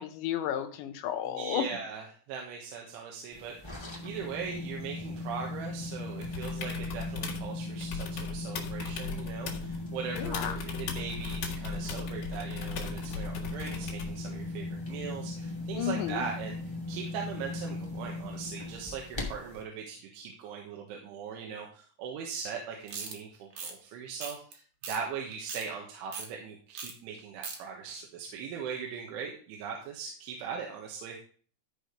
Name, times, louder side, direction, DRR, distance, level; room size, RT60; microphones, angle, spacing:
voice 1, 0.0-1.7 10.2-10.6 15.8-16.2, left 10 dB, 75° left, 7 dB, 3.2 m, -32 dB
voice 2, 1.3-16.6 16.9-31.2, right 6 dB, 85° right, 1 dB, 3.8 m, -40 dB
sound 1, 3.3-19.6, left 2 dB, 30° left, 0.5 m, -38 dB
sound 2, 6.2-7.5 7.8-9.8 10.1-14.2 16.1-16.2, left 5 dB, 55° left, 2.9 m, -39 dB
sound 3, 22.9-23.2 23.5-23.7 24.2-24.5 24.8-25.0 25.3-25.7 26.1-26.3 26.8-26.9 27.2-27.6, right 5 dB, 55° right, 2.6 m, -38 dB
13.5 x 5.0 x 5.2 m, 0.43 s
omnidirectional pair, 5.4 m